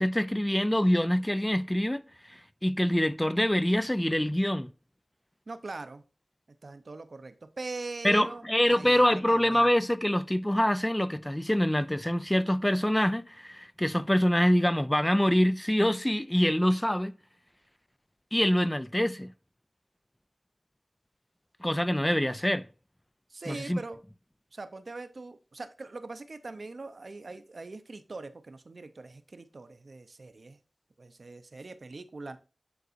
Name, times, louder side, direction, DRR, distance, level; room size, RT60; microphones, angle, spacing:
voice 1, 0.0-4.7 8.0-17.1 18.3-19.3 21.6-22.6 23.5-23.8, equal, 15° left, 0.3 m, -25 dB
voice 2, 5.5-6.0 6.6-9.7 23.3-24.0 24.5-30.6 31.0-32.4, right 3 dB, 65° right, 0.6 m, -42 dB
9.3 x 3.9 x 2.5 m
wide cardioid pair, 60°, 0 cm